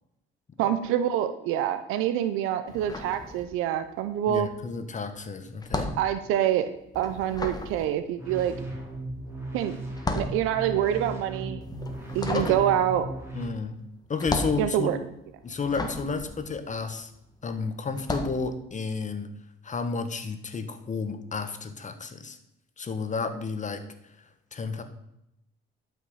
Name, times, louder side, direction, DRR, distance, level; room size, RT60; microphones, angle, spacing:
voice 1, 0.6-4.5 6.0-6.7 6.9-8.5 9.5-9.7 10.1-11.6 12.1-13.1 14.6-15.0, right 11 dB, 85° right, 10 dB, 0.8 m, -26 dB
sound 1, 2.7-3.9 4.2-17.4 17.9-18.4, left 2 dB, 20° left, 1.8 m, -35 dB
voice 2, 4.3-5.9 12.3-12.6 13.3-13.7 14.1-15.0 15.4-17.1 17.4-19.3 19.6-22.4 22.8-23.8 24.5-24.8, left 4 dB, 35° left, 8 dB, 1.6 m, -31 dB
sound 2, 8.2-13.4, right 1 dB, 10° right, 4.3 m, -37 dB
11.5 x 6.0 x 5.7 m, 0.82 s
cardioid pair, 80°, 21 cm